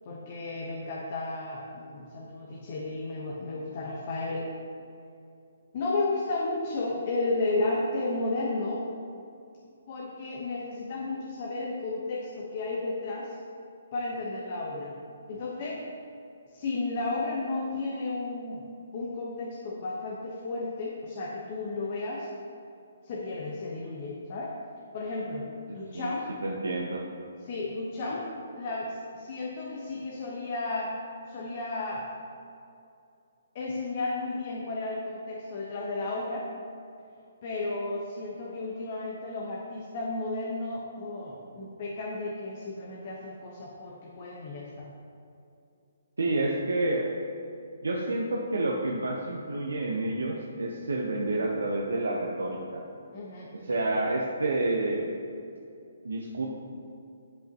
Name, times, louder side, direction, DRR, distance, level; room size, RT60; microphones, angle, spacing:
voice 1, 0.0-4.5 5.7-8.8 9.9-13.3 13.9-15.0 15.3-15.8 16.5-18.6 18.9-22.3 23.0-24.6 24.9-26.3 27.4-31.0 31.3-32.1 33.5-36.5 37.4-44.9 53.1-53.8, left 2 dB, 45° left, -4 dB, 1.1 m, -33 dB
voice 2, 25.7-26.1 26.4-27.0 46.2-47.1 47.8-52.8 53.5-55.1 56.0-56.5, right 2 dB, 80° right, -2 dB, 0.8 m, -29 dB
10.5 x 5.6 x 2.9 m, 2.6 s
hypercardioid pair, 145°, 0 cm